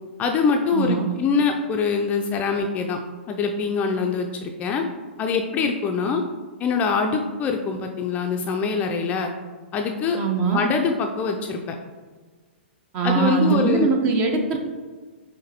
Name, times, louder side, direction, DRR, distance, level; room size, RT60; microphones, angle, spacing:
voice 1, 0.2-3.0 3.3-4.8 5.2-6.2 6.6-9.3 9.7-10.2 10.5-11.8 13.0-13.9, left 5 dB, 25° left, 3 dB, 0.3 m, -24 dB
voice 2, 0.7-1.1 10.2-10.6 12.9-14.6, right 5 dB, 30° right, 3 dB, 0.6 m, -22 dB
5.7 x 3.0 x 2.8 m, 1.4 s
hypercardioid pair, 115°, 6 cm